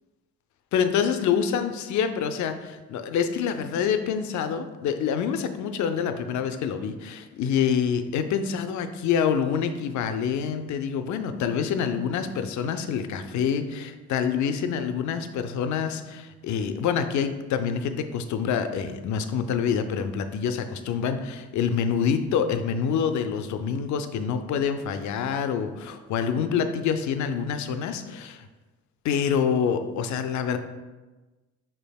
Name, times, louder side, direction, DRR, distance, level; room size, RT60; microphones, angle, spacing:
voice 1, 0.7-28.4 29.0-30.6, left 7 dB, 70° left, 8 dB, 0.5 m, -26 dB
5.7 x 3.4 x 2.3 m, 1.2 s
cardioid pair, 90°, 30 cm